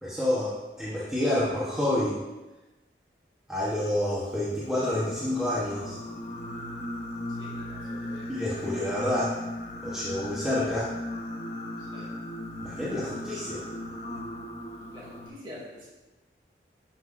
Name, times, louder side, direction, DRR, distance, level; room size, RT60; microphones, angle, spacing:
voice 1, 0.0-2.2 3.5-6.0 8.3-9.3 9.8-10.9 12.6-13.7, left 1 dB, 5° right, -9 dB, 1.0 m, -28 dB
Singing, 4.6-15.3, left 1 dB, 40° left, 0.8 m, -37 dB
voice 2, 7.3-8.3 11.8-12.1 14.9-15.9, left 1 dB, 30° right, -6 dB, 2.6 m, -46 dB
11.5 x 5.9 x 2.5 m, 1.1 s
head